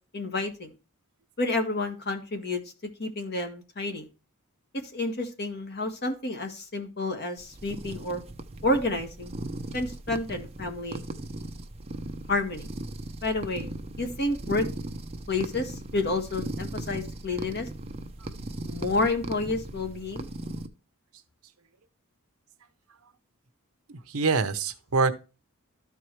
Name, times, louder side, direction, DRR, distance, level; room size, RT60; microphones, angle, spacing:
voice 1, 0.1-0.7 1.4-2.6 3.0-4.1 4.9-8.2 8.6-9.3 9.7-11.0 12.3-12.7 13.2-13.7 14.0-14.6 15.3-17.7 18.6-20.3, left 2 dB, 50° left, 1.6 m, -29 dB
sound 1, 7.4-20.7, right 1 dB, 30° right, 0.7 m, -38 dB
voice 2, 23.9-25.1, right 4 dB, 70° right, 0.9 m, -25 dB
13.0 x 4.7 x 3.1 m
head